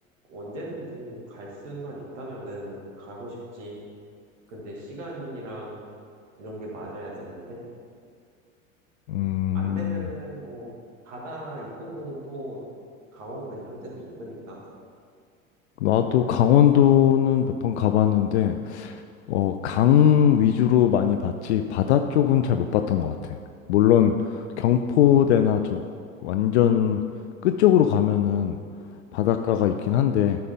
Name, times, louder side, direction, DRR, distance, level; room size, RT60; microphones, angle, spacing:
voice 1, 0.3-3.8 4.5-5.8 6.4-7.6 9.5-10.7 11.0-12.6 13.1-14.6 24.7-25.2 29.9-30.2, right 1 dB, 60° right, -3 dB, 2.4 m, -38 dB
voice 2, 9.1-10.1 15.8-19.0 19.3-23.4 23.7-25.8 26.2-27.0 27.4-28.6 29.1-30.4, left 10 dB, 55° left, 7 dB, 0.5 m, -20 dB
13.0 x 5.6 x 3.7 m, 2.2 s
figure-of-eight pair, 80°, 41 cm